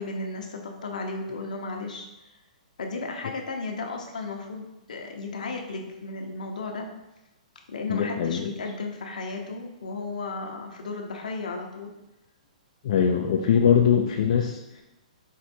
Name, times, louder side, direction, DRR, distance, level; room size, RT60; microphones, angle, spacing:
voice 1, 0.0-2.1 2.8-6.9 7.7-11.9, left 3 dB, 80° left, 2 dB, 0.8 m, -34 dB
voice 2, 7.9-8.5 12.8-14.8, left 8 dB, 60° left, 1 dB, 0.5 m, -22 dB
4.6 x 2.5 x 4.3 m, 0.96 s
hypercardioid pair, 135°, 4 cm